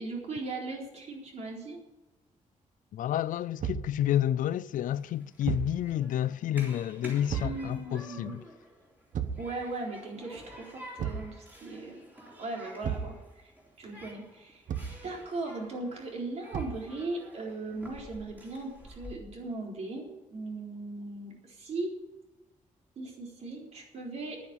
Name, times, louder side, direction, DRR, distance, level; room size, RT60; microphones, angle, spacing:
voice 1, 0.0-1.8 7.4-8.4 9.4-12.1 12.4-13.5 13.8-14.6 15.0-22.0 23.0-24.4, right 2 dB, 55° right, 4.0 m, -38 dB
voice 2, 2.9-8.4, left 11 dB, 80° left, 0.4 m, -30 dB
Thump thud, 3.6-3.9 5.4-5.8 7.3-7.6 9.1-9.5 11.0-11.3 12.8-13.2 14.7-15.0 16.5-16.9, right 8 dB, 75° right, 1.1 m, -33 dB
Human group actions, 4.8-19.1, equal, 15° right, 3.5 m, -50 dB
11.0 x 9.7 x 9.0 m
wide cardioid pair, 175°, 13 cm